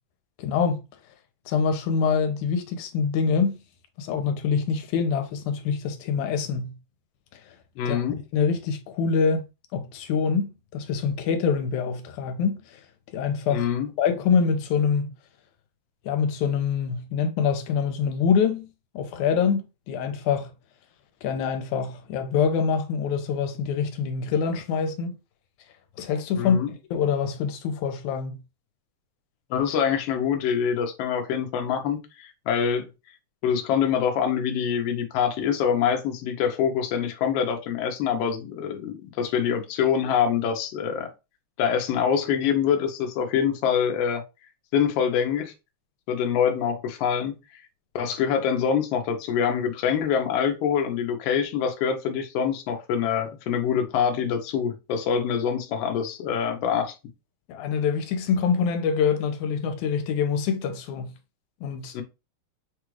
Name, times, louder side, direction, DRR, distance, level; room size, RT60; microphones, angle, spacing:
voice 1, 0.4-0.8 1.5-3.5 4.0-6.8 7.5-7.6 7.9-8.0 8.3-9.5 9.7-12.8 13.1-13.7 14.0-15.1 16.0-18.7 18.9-20.5 21.2-25.2 26.0-26.6 26.9-28.4 57.5-61.1 61.6-62.0, left 6 dB, 90° left, 2.1 m, -25 dB
voice 2, 7.8-8.2 13.5-13.9 26.3-26.7 29.5-32.9 33.4-41.1 41.6-44.2 44.7-45.5 46.1-47.4 47.9-56.9 61.9-62.0, left 7 dB, 70° left, 1.6 m, -25 dB
6.1 x 2.4 x 3.1 m
omnidirectional pair, 3.5 m